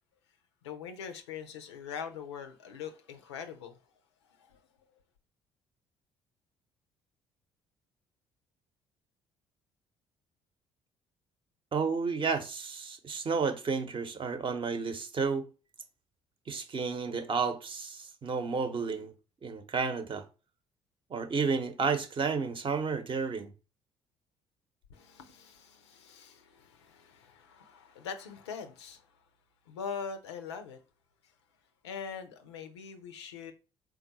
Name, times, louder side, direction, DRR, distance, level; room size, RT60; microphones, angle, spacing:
voice 1, 0.6-3.8 4.4-4.6 24.9-29.1 29.7-30.8 31.8-33.5, left 6 dB, 85° left, 0.5 m, -42 dB
voice 2, 11.7-15.5 16.5-19.1 19.4-20.2 21.1-23.5, right 5 dB, 40° right, 0.8 m, -31 dB
3.7 x 2.3 x 4.0 m
hypercardioid pair, 50°, 14 cm